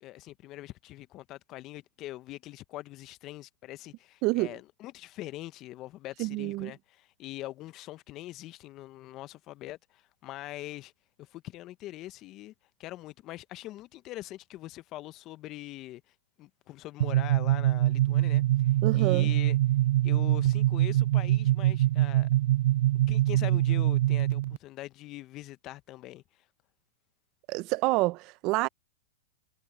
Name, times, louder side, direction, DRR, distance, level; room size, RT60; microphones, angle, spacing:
voice 1, 0.0-10.9 11.2-12.5 12.8-16.0 16.4-19.6 20.0-22.3 23.1-26.4, left 16 dB, 40° left, 1.2 m, -43 dB
voice 2, 4.2-4.5 6.2-6.7 18.8-19.3 27.5-28.7, right 22 dB, 45° right, 0.8 m, -27 dB
sound 1, 17.0-24.6, right 15 dB, 65° right, 0.4 m, -24 dB
hypercardioid pair, 120°, 0 cm